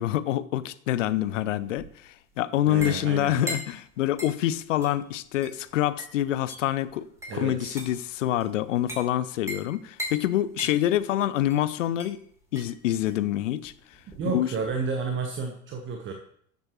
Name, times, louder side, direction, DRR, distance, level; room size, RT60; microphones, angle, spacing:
voice 1, 0.0-12.2 12.5-13.7 14.2-14.5, left 13 dB, 60° left, 16 dB, 0.7 m, -26 dB
sound 1, 1.0-14.9, equal, 5° right, 3.5 m, -42 dB
voice 2, 2.7-3.4 7.3-7.8 14.2-16.1, right 5 dB, 30° right, 4 dB, 1.1 m, -31 dB
12.5 x 7.5 x 3.1 m, 0.66 s
figure-of-eight pair, 75°, 42 cm